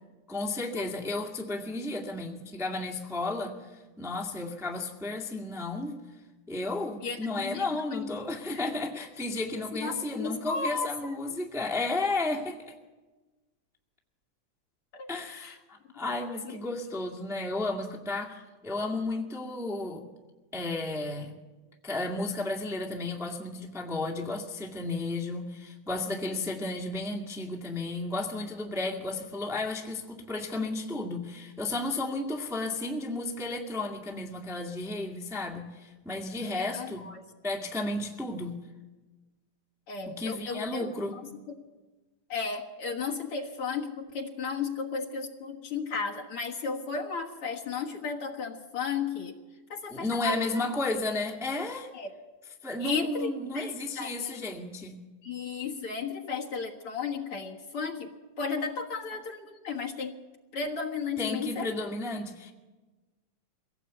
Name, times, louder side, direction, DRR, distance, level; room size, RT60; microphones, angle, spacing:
voice 1, 0.3-3.6 4.0-6.0 6.5-12.6 15.1-20.0 20.5-21.3 21.8-37.1 37.4-38.6 40.0-41.2 49.9-51.9 52.6-55.0 61.2-62.5, left 2 dB, ahead, 1 dB, 1.4 m, -33 dB
voice 2, 7.0-8.1 8.5-8.6 9.7-10.9 11.8-11.9 14.9-15.6 16.4-16.6 36.4-37.2 39.9-41.2 41.5-41.6 42.3-49.4 49.7-50.7 51.9-52.1 52.8-54.5 55.2-60.2 60.5-61.7, left 5 dB, 55° left, 1 dB, 2.2 m, -34 dB
24.0 x 17.5 x 8.3 m, 1.2 s
omnidirectional pair, 3.5 m